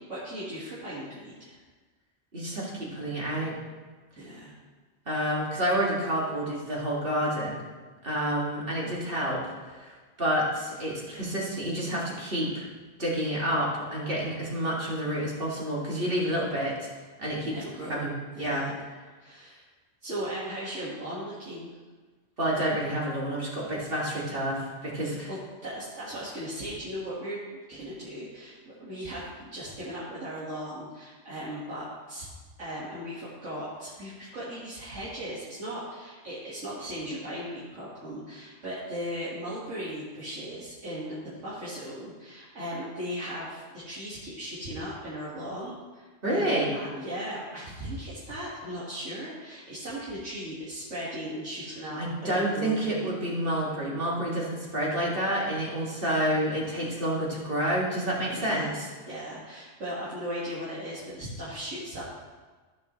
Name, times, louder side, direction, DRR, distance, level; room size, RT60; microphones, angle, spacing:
voice 1, 0.1-1.6 4.2-4.5 17.4-18.0 18.4-18.8 19.2-19.6 20.0-21.7 25.0-27.4 27.7-32.3 32.6-53.0 58.3-58.8 59.1-62.0, equal, 70° right, -9 dB, 2.3 m, -37 dB
voice 2, 2.3-3.6 5.1-7.6 8.0-12.7 13.0-16.9 17.2-17.6 17.9-18.6 22.4-25.3 46.2-46.7 52.0-58.9, right 1 dB, 45° right, -5 dB, 2.3 m, -29 dB
14.5 x 6.8 x 3.1 m, 1.4 s
omnidirectional pair, 1.3 m